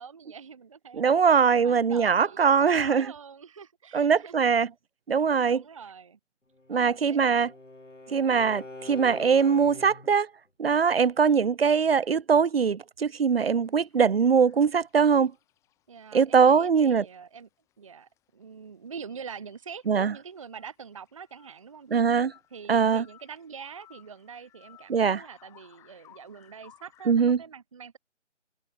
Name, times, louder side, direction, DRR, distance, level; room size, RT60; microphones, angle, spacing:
voice 1, 0.0-4.4 5.4-6.2 6.7-7.5 8.1-8.3 11.2-11.5 15.9-17.5 17.8-22.1 22.5-28.0, right 6 dB, 25° right, 0.8 m, -45 dB
voice 2, 0.9-3.1 3.9-4.7 5.1-5.6 6.7-7.5 8.1-10.3 10.6-15.3 16.1-17.0 19.9-20.1 21.9-22.3 22.7-23.1 24.9-25.2 27.1-27.4, right 6 dB, 55° right, 0.6 m, -22 dB
Bowed string instrument, 6.6-10.2, left 2 dB, 90° left, 5.3 m, -44 dB
sound 1, 13.3-16.1 16.3-16.4 16.9-17.1 17.4-17.5 17.7-17.8 18.1-27.2, left 13 dB, 10° left, 2.5 m, -60 dB
figure-of-eight pair, 155°, 36 cm